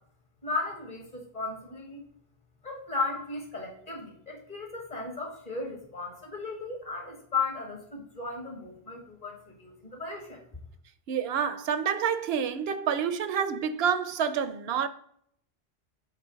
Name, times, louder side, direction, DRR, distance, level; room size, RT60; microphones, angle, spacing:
voice 1, 0.4-2.0 2.6-10.4, left 4 dB, 40° left, 1.8 m, -35 dB
voice 2, 11.1-14.9, right 7 dB, 80° right, 0.8 m, -28 dB
7.5 x 4.3 x 3.8 m
omnidirectional pair, 1.0 m